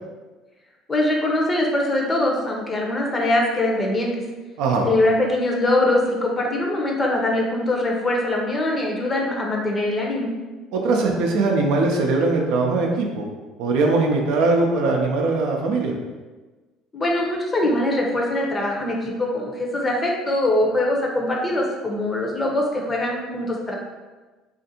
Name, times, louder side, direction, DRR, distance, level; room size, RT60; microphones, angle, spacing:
voice 1, 0.9-4.1 4.8-10.3 16.9-23.8, left 1 dB, 30° left, -1 dB, 0.7 m, -22 dB
voice 2, 10.7-13.3 13.6-15.9, right 3 dB, 70° right, 0 dB, 0.4 m, -20 dB
2.5 x 2.4 x 2.8 m, 1.2 s
hypercardioid pair, 70°, 0 cm